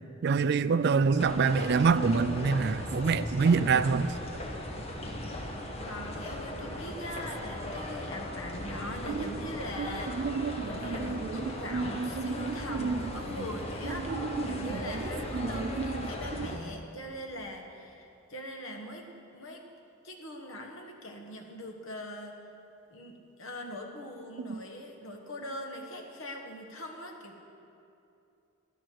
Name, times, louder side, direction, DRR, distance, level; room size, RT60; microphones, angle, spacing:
voice 1, 0.2-4.1 9.1-9.3 9.8-9.9 10.1-13.0 14.0-16.1 16.4-16.5 24.5-24.6, right 5 dB, 50° right, 14 dB, 0.4 m, -28 dB
sound 1, 1.2-16.5, left 1 dB, 30° left, 1.2 m, -38 dB
voice 2, 5.8-10.2 10.6-14.1 14.4-19.6 20.0-22.4 22.9-27.4, left 1 dB, 65° left, 2 dB, 1.5 m, -41 dB
17.0 x 11.5 x 4.7 m, 2.7 s
head